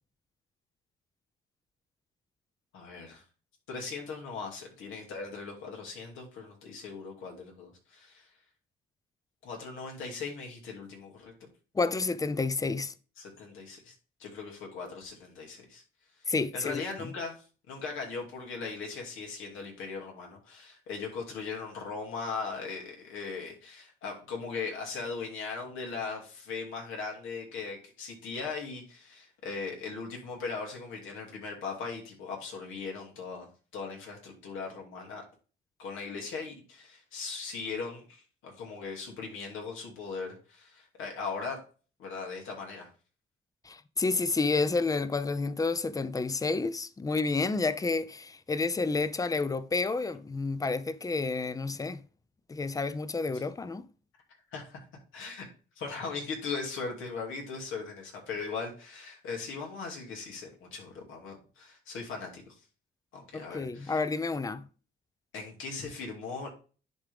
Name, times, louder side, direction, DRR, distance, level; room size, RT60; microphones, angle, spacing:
voice 1, 2.7-3.2 3.7-8.3 9.4-11.5 13.2-13.9 14.2-15.8 16.2-35.2 35.8-41.6 42.0-42.9 53.3-53.4 54.5-54.8 55.1-55.5 55.8-62.6 63.1-64.0 65.3-66.5, left 4 dB, 85° left, 2.6 m, -39 dB
voice 2, 11.7-12.9 16.3-16.8 43.6-52.0 52.5-53.9 63.3-64.7, left 3 dB, 15° left, 0.6 m, -30 dB
10.5 x 3.7 x 3.5 m
cardioid pair, 90°, 20 cm